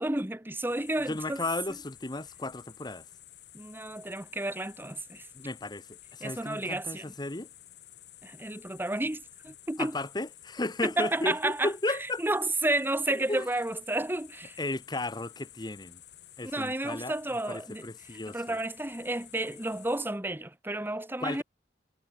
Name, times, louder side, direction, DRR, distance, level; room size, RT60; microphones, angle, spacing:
voice 1, 0.0-1.4 3.5-5.3 6.2-7.1 8.2-9.9 10.8-11.7 12.2-14.6 16.4-17.9 18.3-21.4, right 1 dB, 10° right, 1.1 m, -31 dB
sound 1, 0.7-20.0, left 12 dB, 65° left, 4.8 m, -52 dB
voice 2, 1.1-3.0 5.3-7.5 9.8-12.2 13.1-13.5 14.6-16.0 16.4-17.1 17.5-18.6 21.2-21.4, left 2 dB, 25° left, 1.1 m, -34 dB
head